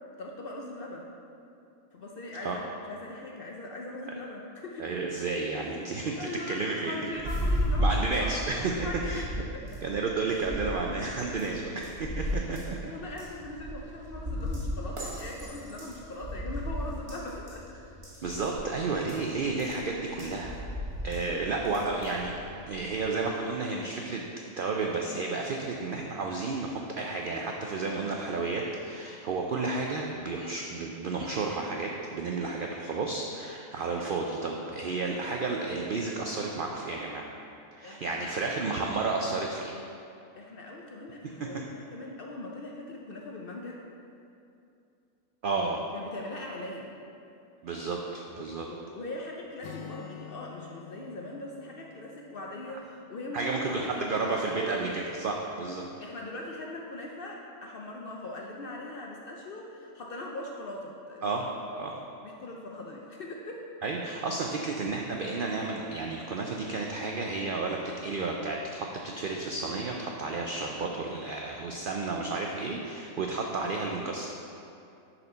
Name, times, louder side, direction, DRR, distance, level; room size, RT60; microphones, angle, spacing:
voice 1, 0.2-1.1 1.9-4.9 5.6-9.3 9.5-9.6 12.2-12.3 12.8-17.6 37.8-38.8 40.3-43.8 45.9-46.9 48.6-54.9 56.0-61.4 62.2-63.7, left 2 dB, 55° left, -1 dB, 0.6 m, -41 dB
voice 2, 4.8-6.9 7.8-8.7 9.1-9.2 9.8-12.9 18.2-20.6 21.0-22.3 22.7-24.2 24.6-37.3 37.7-39.7 45.4-45.8 47.6-48.7 53.3-55.9 61.2-62.0 63.8-74.3, right 3 dB, 70° right, 0 dB, 0.5 m, -32 dB
sound 1, 7.2-23.0, equal, 25° right, 1.1 m, -35 dB
Acoustic guitar, 49.6-53.3, left 8 dB, 75° left, 1.1 m, -47 dB
6.6 x 4.3 x 5.4 m, 2.6 s
omnidirectional pair, 1.5 m